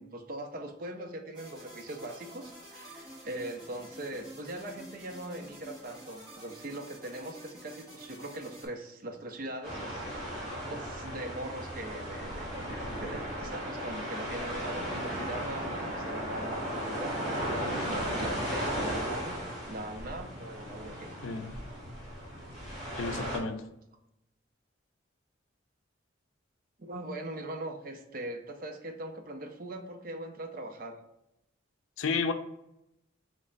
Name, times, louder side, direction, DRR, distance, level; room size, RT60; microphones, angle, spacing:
voice 1, 0.0-10.3 10.7-21.1 26.8-31.0, right 1 dB, 45° right, 5 dB, 0.5 m, -41 dB
sound 1, 1.3-8.7, equal, 20° right, 1.4 m, -49 dB
sound 2, 9.6-23.4, equal, ahead, 1.5 m, -36 dB
voice 2, 21.2-21.6 23.0-23.6 32.0-32.3, left 4 dB, 85° left, 8 dB, 0.4 m, -31 dB
3.2 x 3.2 x 3.9 m, 0.85 s
head